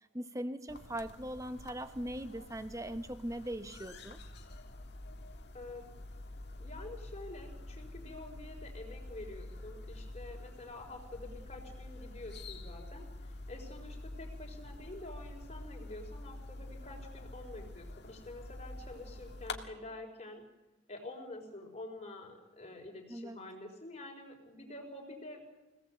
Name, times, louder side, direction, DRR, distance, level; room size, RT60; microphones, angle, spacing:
voice 1, 0.1-4.2 23.1-23.4, right 1 dB, 15° right, 10 dB, 1.0 m, -40 dB
sound 1, 0.7-19.6, left 2 dB, 55° left, 1.8 m, -47 dB
voice 2, 5.5-5.9 6.6-20.4 20.9-25.4, left 2 dB, 35° left, 2 dB, 4.6 m, -48 dB
25.5 x 18.0 x 7.9 m, 1.1 s
head